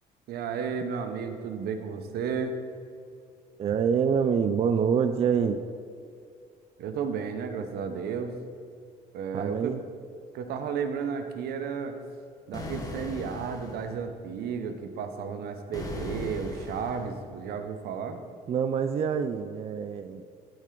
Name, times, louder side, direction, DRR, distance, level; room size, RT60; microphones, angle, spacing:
voice 1, 0.3-2.6 6.8-8.3 9.1-9.7 10.3-12.0 12.5-18.2, right 6 dB, 70° right, 7 dB, 0.8 m, -33 dB
voice 2, 3.6-5.6 9.3-9.8 18.5-20.2, right 7 dB, 35° right, 8 dB, 0.4 m, -26 dB
sound 1, 12.5-13.9 15.7-17.2, left 2 dB, 20° left, 1.2 m, -38 dB
12.0 x 4.3 x 3.8 m, 2.3 s
cardioid pair, 110°, 17 cm